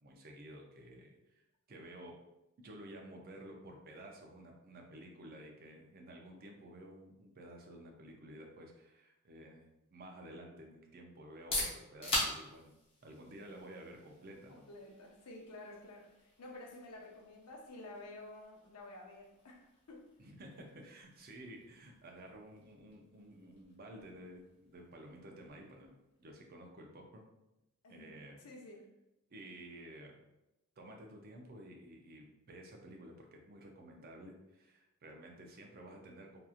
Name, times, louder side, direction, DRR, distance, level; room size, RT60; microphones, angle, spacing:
voice 1, 0.0-1.1 1.7-2.1 2.6-9.6 9.9-12.7 13.0-14.7 20.2-25.9 26.2-27.3 27.9-28.4 29.3-30.2 30.8-36.4, right 1 dB, 40° right, 1 dB, 0.5 m, -52 dB
sound 1, 11.2-26.9, left 1 dB, 25° left, 0.9 m, -45 dB
voice 2, 14.5-20.1 27.8-28.9, left 2 dB, 90° left, 1 dB, 0.6 m, -51 dB
2.9 x 2.4 x 2.4 m, 0.92 s
head